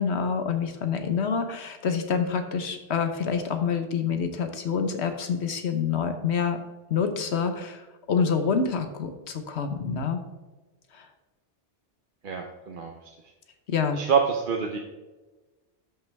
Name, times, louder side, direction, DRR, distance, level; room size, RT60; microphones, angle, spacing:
voice 1, 0.0-6.6 6.9-10.2 10.9-11.1 13.7-14.0, left 6 dB, 80° left, 7 dB, 1.2 m, -27 dB
voice 2, 12.2-12.9 13.9-14.8, right 6 dB, 55° right, 2 dB, 0.9 m, -26 dB
12.0 x 5.7 x 3.4 m, 1.2 s
omnidirectional pair, 1.1 m